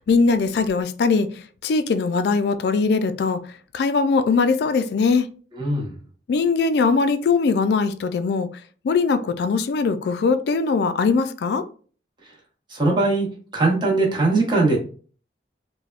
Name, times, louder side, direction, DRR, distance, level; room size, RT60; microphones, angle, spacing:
voice 1, 0.1-1.3 1.6-3.4 3.7-5.3 6.3-8.5 8.8-11.6, left 4 dB, 65° left, 0.3 m, -20 dB
voice 2, 5.6-5.9 12.7-13.3 13.5-14.8, right 2 dB, 25° right, 0.8 m, -20 dB
3.3 x 2.1 x 2.4 m
head